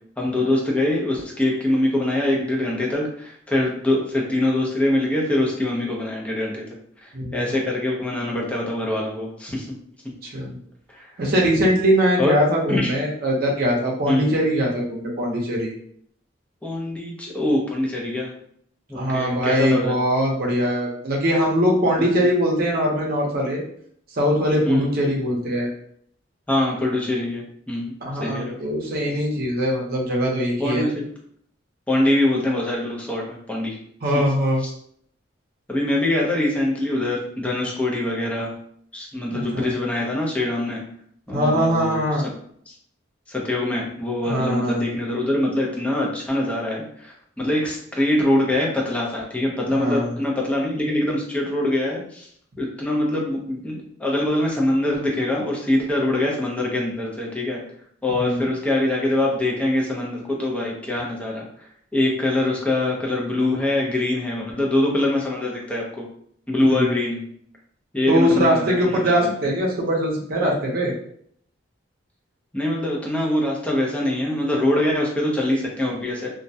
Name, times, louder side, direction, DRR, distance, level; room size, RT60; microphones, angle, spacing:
voice 1, 0.2-6.6 7.0-9.7 10.9-11.1 12.2-12.3 12.7-12.9 14.1-14.3 16.6-18.3 18.9-19.9 22.0-22.1 24.6-24.9 26.5-27.9 28.2-28.6 30.6-31.0 31.9-33.8 34.1-34.2 35.7-38.5 38.9-40.8 41.3-42.0 43.3-52.3 52.6-57.6 58.0-61.4 61.9-66.0 66.5-67.2 67.9-69.5 72.5-76.3, left 1 dB, 5° left, -2 dB, 0.5 m, -23 dB
voice 2, 10.2-10.6 11.2-15.7 18.9-23.6 24.1-25.7 28.0-30.9 34.0-34.6 39.3-39.7 41.3-42.3 44.2-44.8 49.7-50.1 58.2-58.5 66.7-66.9 68.1-70.9, equal, 55° right, -2 dB, 0.7 m, -22 dB
2.3 x 2.1 x 2.6 m, 0.65 s
head